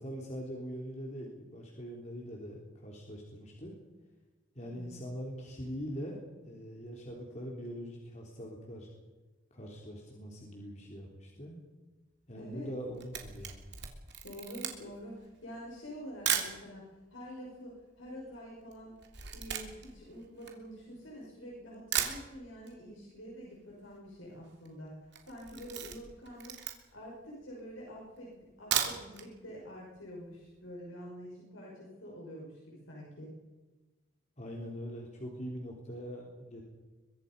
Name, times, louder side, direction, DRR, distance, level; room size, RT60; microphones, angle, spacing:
voice 1, 0.0-3.7 4.6-6.2 6.4-8.9 9.5-11.6 12.3-13.5 34.4-36.6, equal, 35° left, -1 dB, 3.5 m, -42 dB
voice 2, 12.4-12.7 14.2-18.9 19.3-26.6 26.9-33.3, equal, 85° left, -3 dB, 5.7 m, -47 dB
Camera, 12.7-16.6 17.3-17.4 17.6-21.2 21.6-21.7 21.9-22.8 23.0-23.1 23.4-23.5 23.7-24.1 24.5-24.7 25.1-27.1 27.6-27.7 28.5-29.3 29.6-29.7 30.1-30.2, right 9 dB, 60° right, 3.0 m, -36 dB
24.0 x 23.0 x 5.4 m, 1.2 s
head